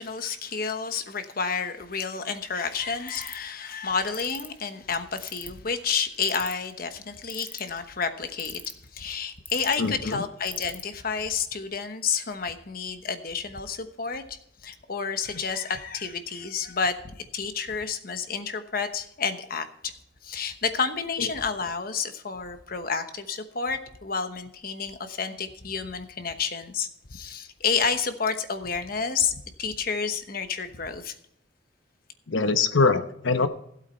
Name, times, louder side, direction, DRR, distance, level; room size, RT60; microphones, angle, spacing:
voice 1, 0.0-8.6 8.9-14.4 14.6-19.9 20.2-31.1, left 5 dB, 50° left, 8 dB, 1.1 m, -30 dB
sound 1, 3.1-3.5 4.1-4.5 5.2-5.6 6.2-6.7 7.3-7.8 8.4-8.9 9.5-9.8 10.5-10.8, left 3 dB, 10° left, 0.6 m, -38 dB
voice 2, 9.8-10.2 32.3-33.5, left 4 dB, 85° left, 10 dB, 1.0 m, -23 dB
15.5 x 8.3 x 4.5 m, 0.72 s
head